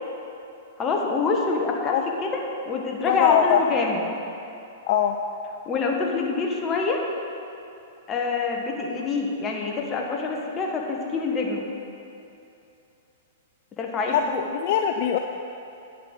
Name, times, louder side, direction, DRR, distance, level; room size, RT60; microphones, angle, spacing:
voice 1, 0.8-4.0 5.7-7.1 8.1-11.7 13.8-14.5, left 4 dB, 25° left, 1 dB, 1.2 m, -26 dB
voice 2, 3.1-3.6 4.9-5.2 14.1-14.2 14.5-15.2, left 10 dB, 55° left, 5 dB, 0.4 m, -21 dB
8.9 x 6.4 x 3.9 m, 2.8 s
hypercardioid pair, 115°, 0 cm